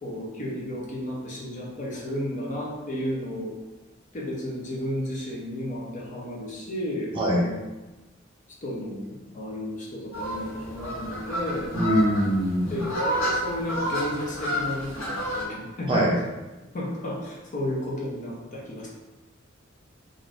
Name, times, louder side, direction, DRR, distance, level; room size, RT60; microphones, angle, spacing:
voice 1, 0.0-3.5 4.1-7.6 8.6-11.7 12.7-16.1 16.7-18.9, left 1 dB, 40° left, -4 dB, 0.6 m, -33 dB
voice 2, 7.1-7.5 11.7-12.7 15.9-16.1, equal, 25° right, -4 dB, 0.6 m, -22 dB
sound 1, 10.1-15.4, equal, 85° left, 0.9 m, -30 dB
2.6 x 2.5 x 3.3 m, 1.1 s
head